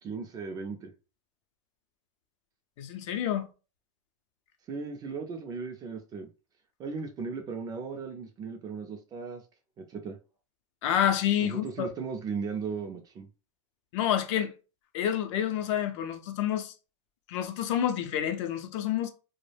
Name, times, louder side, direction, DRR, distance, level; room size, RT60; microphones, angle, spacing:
voice 1, 0.0-0.9 4.7-6.3 6.8-9.4 9.8-10.2 11.4-13.3, right 5 dB, 20° right, 0.3 m, -37 dB
voice 2, 2.8-3.5 10.8-11.9 13.9-14.5 14.9-16.7 17.3-19.1, left 10 dB, 60° left, 0.5 m, -28 dB
2.2 x 2.0 x 3.2 m
supercardioid pair, 135°, 17 cm